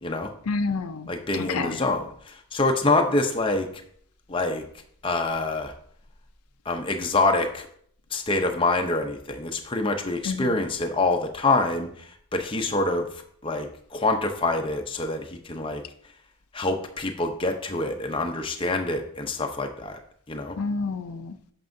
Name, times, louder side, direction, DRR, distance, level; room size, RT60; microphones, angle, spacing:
voice 1, 0.5-1.8 10.2-10.6 20.6-21.4, left 4 dB, 80° left, 10 dB, 0.5 m, -29 dB
voice 2, 1.1-3.7 4.3-4.6 5.0-5.7 6.7-7.7 8.1-11.9 12.3-13.1 13.4-15.8 16.5-20.0 20.3-20.6, left 2 dB, 25° left, 4 dB, 0.6 m, -26 dB
9.2 x 6.1 x 2.6 m, 0.63 s
head